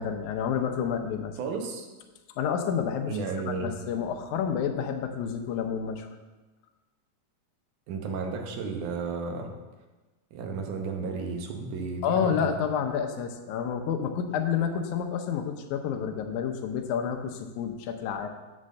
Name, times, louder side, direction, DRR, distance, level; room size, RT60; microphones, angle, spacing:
voice 1, 0.0-1.3 2.4-3.2 3.4-6.1 12.0-18.3, left 7 dB, 80° left, 5 dB, 2.1 m, -29 dB
voice 2, 1.4-1.9 3.1-3.7 7.9-9.5 10.3-12.5, right 4 dB, 90° right, 3 dB, 2.5 m, -33 dB
8.6 x 4.3 x 6.4 m, 1.2 s
omnidirectional pair, 3.5 m